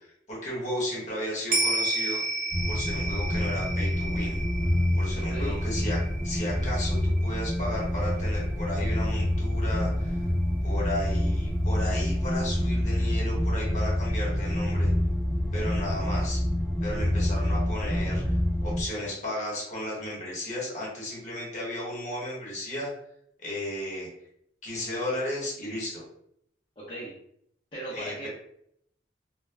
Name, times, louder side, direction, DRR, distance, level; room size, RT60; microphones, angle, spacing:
voice 1, 0.0-2.2 2.7-4.4 4.9-6.0 6.2-10.2 10.6-14.9 15.5-16.4 16.8-18.2 18.6-22.9 23.4-24.1 24.6-26.0 27.9-28.3, left 1 dB, 45° left, -4 dB, 1.1 m, -34 dB
sound 1, 1.5-10.1 10.4-10.5, right 2 dB, 55° right, 0.6 m, -33 dB
sound 2, 2.5-18.8, left 1 dB, ahead, 0.8 m, -27 dB
voice 2, 5.1-5.6 26.8-27.2 27.7-28.3, right 1 dB, 25° left, -9 dB, 0.7 m, -38 dB
2.2 x 2.1 x 3.4 m, 0.71 s
head